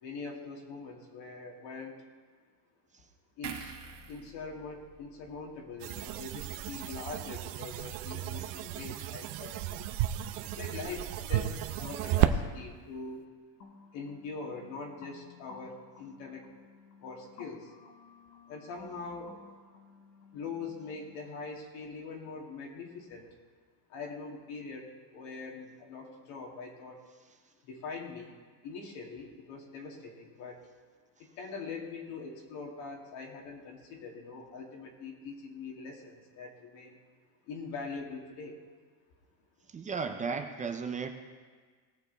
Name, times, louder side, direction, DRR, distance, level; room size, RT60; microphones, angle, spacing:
voice 1, 0.0-2.0 3.4-3.8 4.1-9.7 10.4-13.2 13.9-16.5 17.0-17.7 18.5-19.3 20.3-23.3 23.9-27.0 27.6-30.6 31.2-37.0 37.5-38.6, left 4 dB, 65° left, 0 dB, 2.3 m, -43 dB
sound 1, 3.4-6.8 7.1-7.3, right 6 dB, 35° right, 1.6 m, -48 dB
sound 2, 5.8-12.3, right 13 dB, 55° right, 0.7 m, -33 dB
sound 3, 13.6-21.2, left 4 dB, 80° left, 1.8 m, -55 dB
voice 2, 39.7-41.1, right 5 dB, 15° right, 5 dB, 0.5 m, -34 dB
18.5 x 6.7 x 4.0 m, 1.5 s
cardioid pair, 145°, 48 cm